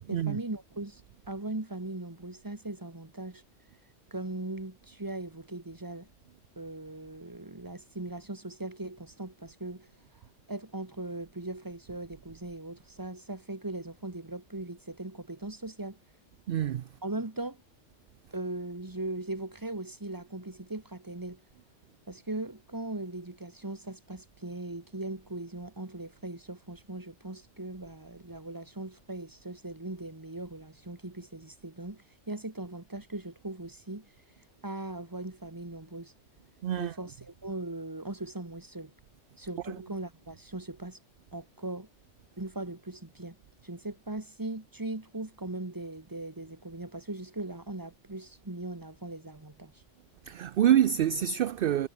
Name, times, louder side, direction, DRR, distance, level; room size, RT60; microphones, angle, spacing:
voice 1, 0.1-3.4 4.1-6.1 6.6-9.9 10.5-16.0 17.0-17.6 18.3-21.4 22.1-34.1 34.6-36.1 36.8-38.9 39.4-41.0 41.3-41.9 42.4-43.4 43.6-49.8, right 2 dB, 15° right, 1.8 m, -39 dB
voice 2, 16.5-16.9 36.6-36.9 39.7-39.8 50.3-51.9, right 10 dB, 60° right, 0.7 m, -26 dB
omnidirectional pair, 1.2 m